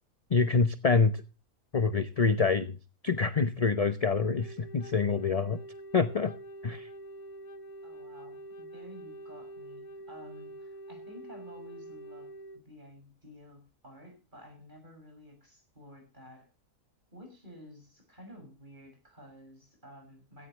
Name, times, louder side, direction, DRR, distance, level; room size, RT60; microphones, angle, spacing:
voice 1, 0.3-1.1 1.7-2.8 3.0-5.6 5.9-6.3 6.6-6.9, left 4 dB, 30° left, 11 dB, 0.7 m, -26 dB
Wind instrument woodwind instrument, 4.0-12.6, right 1 dB, 75° left, 2.0 m, -46 dB
voice 2, 7.8-12.3 12.7-16.5 17.1-20.5, equal, 30° right, 3 dB, 7.1 m, -52 dB
16.5 x 15.0 x 3.2 m, 0.32 s
omnidirectional pair, 1.6 m